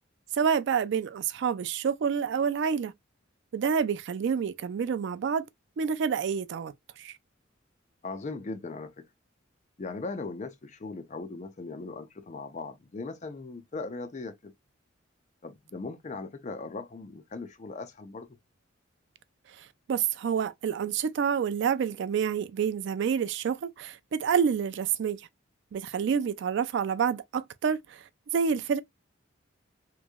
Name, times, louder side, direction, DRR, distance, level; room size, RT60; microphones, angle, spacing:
voice 1, 0.3-2.9 3.5-5.5 5.8-7.1 19.6-25.3 25.7-28.0 28.3-28.8, right 7 dB, 60° right, 0.3 m, -28 dB
voice 2, 8.0-9.1 9.8-14.5 15.4-18.3, left 3 dB, 35° left, 0.5 m, -39 dB
3.0 x 2.6 x 2.3 m
head